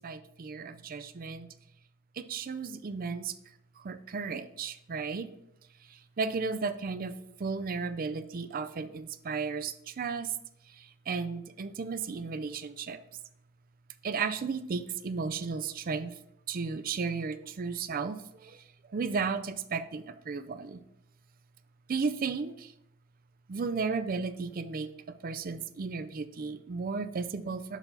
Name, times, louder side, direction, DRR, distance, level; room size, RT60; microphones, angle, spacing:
voice 1, 0.0-1.5 2.1-3.3 3.8-5.3 5.9-10.4 10.7-13.0 14.0-16.1 16.5-20.8 21.9-22.7 23.5-27.8, right 5 dB, 45° right, 11 dB, 0.4 m, -34 dB
7.3 x 5.4 x 3.4 m, 0.80 s
head